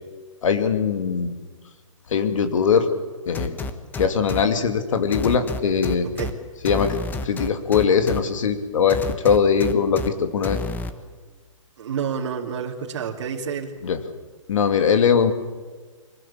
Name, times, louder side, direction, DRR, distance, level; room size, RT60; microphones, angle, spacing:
voice 1, 0.4-1.3 2.1-2.9 3.3-3.6 4.0-6.1 6.6-10.6 13.8-14.0 14.5-15.3, left 6 dB, 70° left, 8 dB, 2.5 m, -21 dB
sound 1, 3.3-4.4 5.1-6.3 6.7-8.2 8.9-10.1 10.4-10.9, left 2 dB, 10° left, 1.2 m, -29 dB
voice 2, 6.0-6.4 11.8-13.7, right 7 dB, 55° right, 0 dB, 2.5 m, -29 dB
24.0 x 19.5 x 8.6 m, 1.4 s
hypercardioid pair, 155°, 17 cm